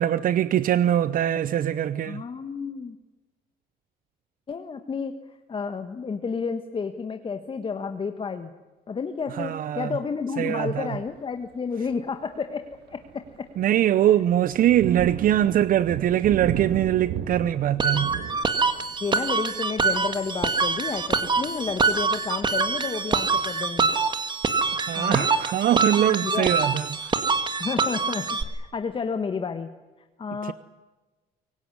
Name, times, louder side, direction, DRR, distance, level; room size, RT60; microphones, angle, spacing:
voice 1, 0.0-2.2 9.3-10.0 10.4-10.9 13.6-18.1 24.7-27.2 30.4-30.5, right 11 dB, 55° right, 0.7 m, -23 dB
voice 2, 2.1-3.0 4.5-8.5 8.9-13.0 13.4-13.5 14.1-14.2 19.0-23.9 24.9-25.3 26.2-26.5 27.6-29.7 30.2-30.5, left 5 dB, 30° left, 1.5 m, -31 dB
Thunder, 10.9-11.3 11.8-12.0 12.4-23.0, right 10 dB, 75° right, 1.7 m, -37 dB
sound 1, 17.8-28.4, right 4 dB, 25° right, 2.0 m, -25 dB
24.5 x 18.0 x 9.8 m
cardioid pair, 110°, 17 cm